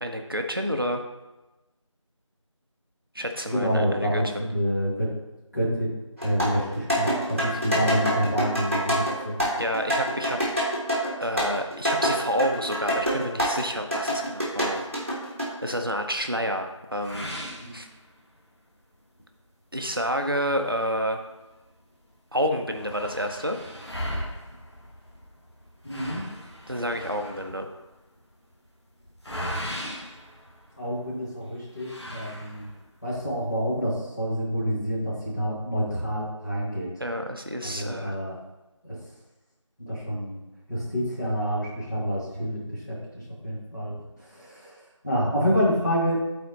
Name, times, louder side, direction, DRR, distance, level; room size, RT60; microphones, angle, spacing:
voice 1, 0.0-1.0 3.1-4.5 9.6-10.4 11.2-14.8 15.6-17.3 17.7-17.9 19.7-21.2 22.3-23.6 26.7-27.7 37.0-38.1, equal, 45° right, 4 dB, 0.7 m, -29 dB
voice 2, 3.5-5.1 5.5-5.9 6.2-9.5 17.6-17.8 25.8-26.3 30.8-32.7 33.0-36.9 37.6-38.4 38.8-39.0 39.8-40.4 40.7-43.9 44.2-46.2, equal, 35° left, -6 dB, 1.8 m, -28 dB
sound 1, 6.2-13.6 13.9-15.4, equal, 25° right, 1.2 m, -26 dB
sound 2, 17.0-18.5 18.9-19.0 19.5-19.6 20.4-21.7 22.0-22.1 22.3-31.1 31.7-32.9, equal, 55° left, 1.3 m, -38 dB
12.0 x 4.2 x 2.8 m, 1.1 s
figure-of-eight pair, 180°, 16 cm